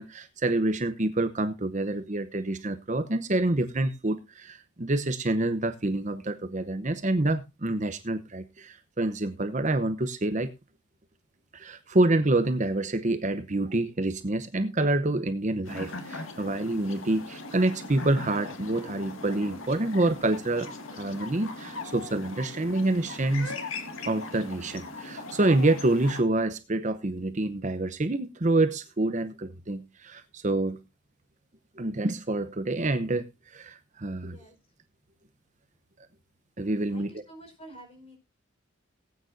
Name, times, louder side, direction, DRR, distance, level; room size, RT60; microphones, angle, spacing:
voice 1, 0.0-10.5 11.5-23.5 24.0-30.8 31.8-34.4 36.6-37.2, right 2 dB, 35° right, 0.8 m, -27 dB
sound 1, 15.6-26.2, left 3 dB, 80° left, 2.0 m, -40 dB
voice 2, 34.2-34.6 36.9-38.2, right 1 dB, 30° left, 4.8 m, -49 dB
19.0 x 9.1 x 2.6 m
head